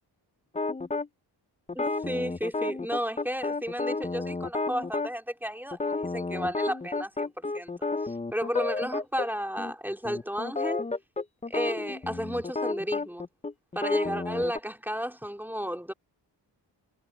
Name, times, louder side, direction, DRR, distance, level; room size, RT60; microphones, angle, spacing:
sound 1, 0.5-1.1 1.7-5.1 5.7-9.3 9.6-9.7 10.0-14.6, left 3 dB, 15° left, 0.6 m, -31 dB
voice 1, 1.7-10.8 11.5-13.3 13.7-15.9, equal, 5° right, 3.0 m, -33 dB
cardioid pair, 65°, 44 cm